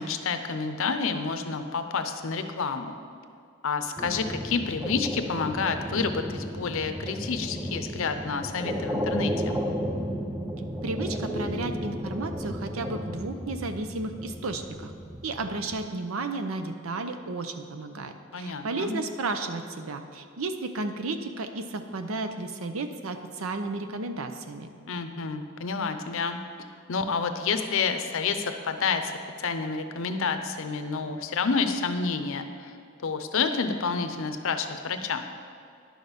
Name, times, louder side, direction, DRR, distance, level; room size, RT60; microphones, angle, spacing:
voice 1, 0.0-3.0 3.6-9.6 18.3-18.9 24.9-26.4 26.9-32.7 33.0-35.2, left 5 dB, 70° left, 8 dB, 0.7 m, -29 dB
sound 1, 4.0-15.8, equal, 10° right, 0.5 m, -33 dB
voice 2, 10.8-14.9 15.2-24.7, right 3 dB, 75° right, 8 dB, 0.7 m, -33 dB
10.5 x 6.3 x 5.1 m, 2.4 s
head